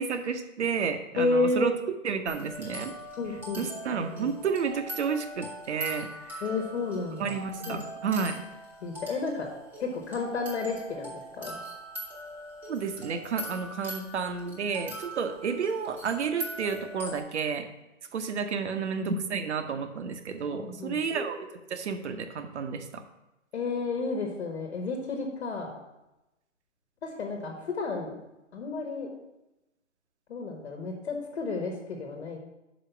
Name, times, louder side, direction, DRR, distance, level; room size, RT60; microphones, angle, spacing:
voice 1, 0.0-1.7 2.0-2.9 3.6-6.4 7.2-8.4 12.7-17.7 18.1-23.0, right 6 dB, 60° right, 8 dB, 0.8 m, -31 dB
voice 2, 1.2-1.7 3.2-3.6 6.4-7.3 7.7-7.8 8.8-9.5 9.8-11.6 20.5-21.0 23.5-25.8 27.0-28.2 28.5-29.1 30.3-32.4, left 3 dB, 55° left, 1 dB, 1.4 m, -31 dB
sound 1, 2.3-17.2, equal, 5° right, 0.9 m, -41 dB
5.5 x 5.1 x 5.7 m, 0.96 s
hypercardioid pair, 145°, 38 cm